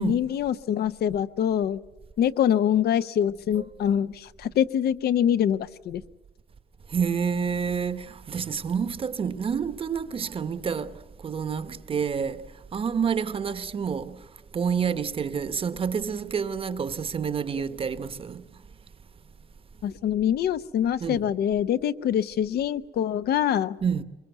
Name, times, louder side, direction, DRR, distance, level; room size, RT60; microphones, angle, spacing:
voice 1, 0.0-1.8 2.2-6.0 19.8-23.8, left 9 dB, 65° left, 0.8 m, -24 dB
voice 2, 6.9-14.3 14.5-18.4 21.0-21.2 23.8-24.0, right 6 dB, 30° right, 1.0 m, -28 dB
24.0 x 23.0 x 8.1 m
cardioid pair, 160°, 17 cm